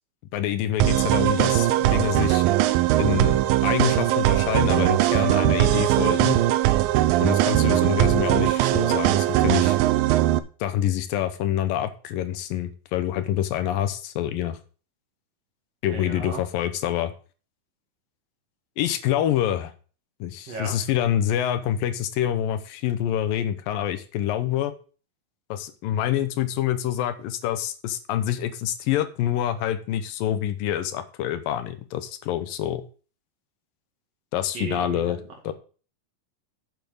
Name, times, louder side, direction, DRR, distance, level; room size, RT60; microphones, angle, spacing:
voice 1, 0.3-2.5 3.0-6.4 7.2-9.8 10.6-14.6 15.8-17.1 18.8-19.7 20.2-24.7 25.5-32.8 34.3-35.2 35.4-35.5, left 11 dB, 80° left, 10 dB, 2.5 m, -26 dB
sound 1, 0.8-10.4, right 15 dB, 85° right, 2.3 m, -20 dB
voice 2, 15.8-16.4 20.5-20.7 34.5-35.3, right 4 dB, 50° right, 1 dB, 2.9 m, -35 dB
8.2 x 7.0 x 5.2 m, 0.38 s
omnidirectional pair, 4.1 m